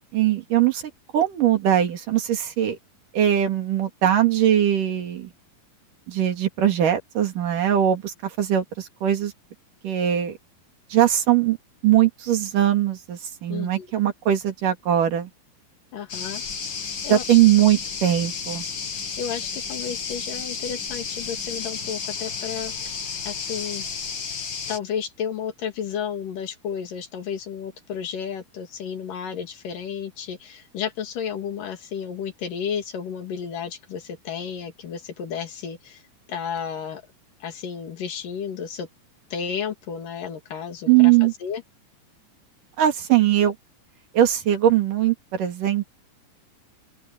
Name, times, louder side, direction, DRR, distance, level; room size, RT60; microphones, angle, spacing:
voice 1, 0.1-0.8 1.1-2.8 3.1-5.3 6.1-9.3 9.8-10.4 10.9-11.6 11.8-15.3 17.1-18.6 40.9-41.3 42.8-43.6 44.1-45.9, right 11 dB, 70° right, 3.8 m, -20 dB
voice 2, 13.5-13.9 15.9-16.4 17.0-17.4 18.9-23.9 24.2-24.4 24.7-36.0 36.3-37.0 37.4-38.9 39.3-41.6, left 7 dB, 70° left, 3.9 m, -32 dB
sound 1, 16.1-24.8, left 6 dB, 40° left, 2.1 m, -32 dB
open air
omnidirectional pair, 3.9 m